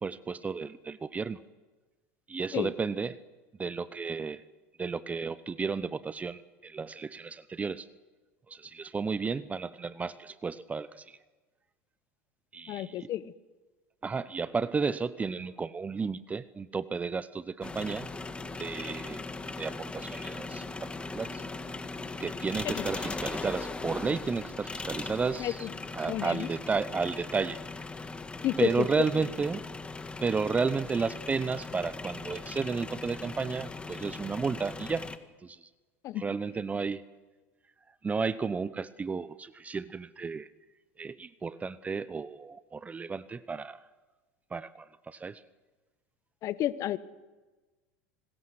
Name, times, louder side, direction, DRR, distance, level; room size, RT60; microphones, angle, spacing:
voice 1, 0.0-1.4 2.3-3.2 3.6-4.4 4.8-7.9 8.5-11.2 12.5-13.1 14.0-18.1 18.6-19.2 19.6-21.4 22.2-25.6 25.9-27.6 28.6-29.6 30.2-35.1 35.4-35.6 36.2-37.0 38.0-40.5 41.0-43.8 44.5-45.4, right 5 dB, 20° right, 16 dB, 0.8 m, -33 dB
voice 2, 12.7-13.3 22.6-22.9 25.4-25.7 26.1-26.5 28.4-28.9 36.0-36.2 46.4-47.0, left 12 dB, 50° left, 16 dB, 1.2 m, -31 dB
sound 1, 17.6-35.2, left 3 dB, 15° left, 1.6 m, -39 dB
26.0 x 20.5 x 6.3 m, 1.2 s
hypercardioid pair, 90°, 7 cm